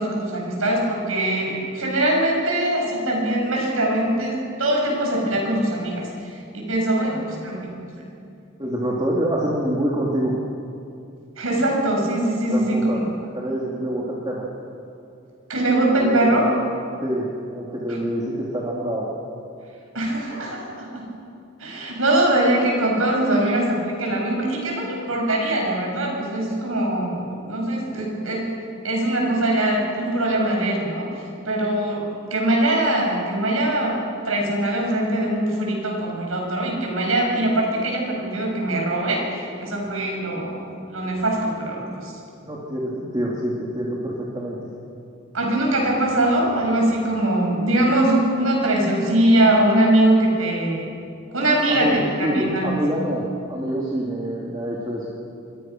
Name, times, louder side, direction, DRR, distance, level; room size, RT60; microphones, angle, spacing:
voice 1, 0.0-7.7 11.4-13.0 15.5-16.4 19.9-21.1 21.6-28.5 28.8-32.0 32.3-34.0 34.3-42.1 45.3-50.9 51.3-52.7, right 1 dB, 85° right, -1 dB, 7.7 m, -22 dB
voice 2, 7.0-7.7 8.6-10.3 12.4-13.0 13.3-14.5 15.9-16.5 17.0-19.1 42.4-44.7 51.7-55.1, right 1 dB, 20° right, -4 dB, 3.1 m, -26 dB
27.5 x 23.5 x 6.2 m, 2.6 s
head